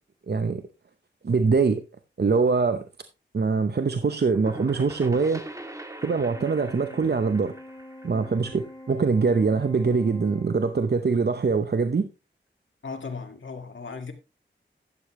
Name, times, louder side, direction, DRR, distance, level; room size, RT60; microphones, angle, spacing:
voice 1, 0.3-0.6 1.2-1.8 2.2-2.8 3.3-5.4 6.0-7.5 8.0-12.1, right 4 dB, 60° right, 0.8 m, -23 dB
sound 1, 4.0-9.6, right 1 dB, 15° right, 1.4 m, -43 dB
Organ, 6.0-11.1, left 1 dB, 20° left, 1.7 m, -45 dB
voice 2, 12.8-14.1, left 4 dB, 80° left, 2.0 m, -36 dB
12.5 x 8.6 x 3.1 m
wide cardioid pair, 85°, 20 cm